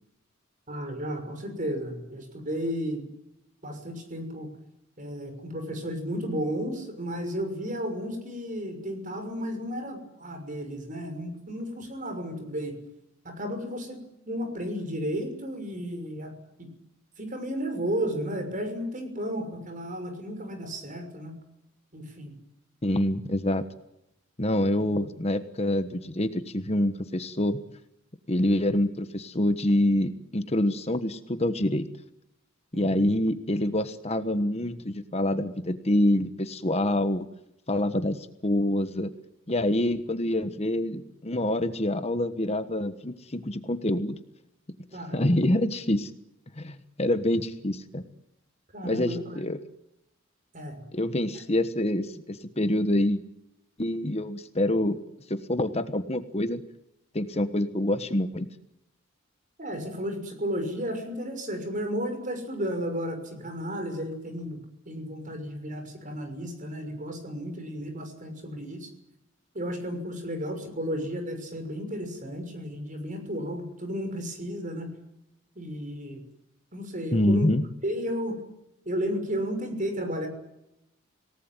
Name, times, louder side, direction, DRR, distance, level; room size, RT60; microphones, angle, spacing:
voice 1, 0.7-3.1 3.6-4.5 5.0-12.8 13.2-16.3 16.6-16.7 17.2-21.3 21.9-22.3 32.7-33.1 44.9-45.4 48.7-49.4 50.5-50.8 59.6-64.6 64.9-68.9 69.5-74.9 75.6-76.2 76.7-77.5 77.8-78.4 78.9-80.3, equal, 40° right, 6 dB, 6.2 m, -33 dB
voice 2, 22.8-23.6 24.4-27.6 28.3-31.9 32.7-37.3 37.7-39.1 39.5-44.2 45.1-46.1 46.6-48.0 48.8-49.6 50.9-53.2 53.8-55.0 55.3-56.6 57.1-58.5 77.1-77.6, left 1 dB, 30° left, 10 dB, 1.3 m, -26 dB
27.0 x 18.5 x 9.1 m, 0.84 s
head